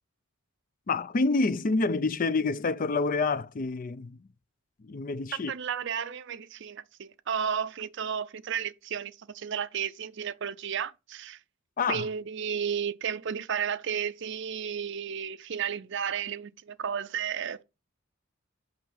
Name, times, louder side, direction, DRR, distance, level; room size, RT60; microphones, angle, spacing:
voice 1, 0.9-4.3 4.8-5.5 11.8-12.1, left 3 dB, 40° left, 0.4 m, -28 dB
voice 2, 5.5-11.4 11.9-17.6, right 7 dB, 60° right, 0.5 m, -33 dB
5.8 x 5.2 x 5.6 m
head